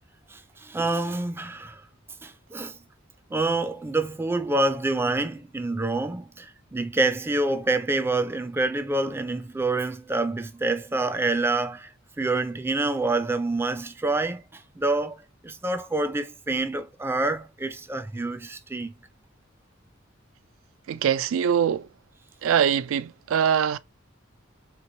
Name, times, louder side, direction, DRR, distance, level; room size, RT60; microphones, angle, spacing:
voice 1, 0.3-1.8 2.2-2.8 3.3-11.9 12.2-15.2 15.4-18.9, right 2 dB, 10° right, 0.4 m, -27 dB
voice 2, 20.9-21.8 22.4-23.8, right 8 dB, 85° right, 0.3 m, -23 dB
3.2 x 3.1 x 2.6 m
head